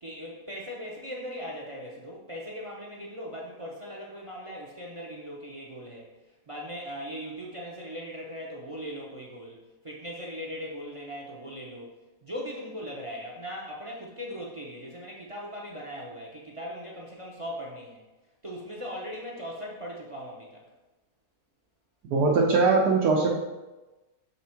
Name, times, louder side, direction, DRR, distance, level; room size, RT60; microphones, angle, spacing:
voice 1, 0.0-6.1 6.5-9.6 9.8-11.9 12.2-18.0 18.4-20.6, equal, 35° right, -3 dB, 0.5 m, -39 dB
voice 2, 22.0-23.3, right 4 dB, 85° right, -3 dB, 1.4 m, -21 dB
6.9 x 3.5 x 4.4 m, 1.1 s
omnidirectional pair, 1.7 m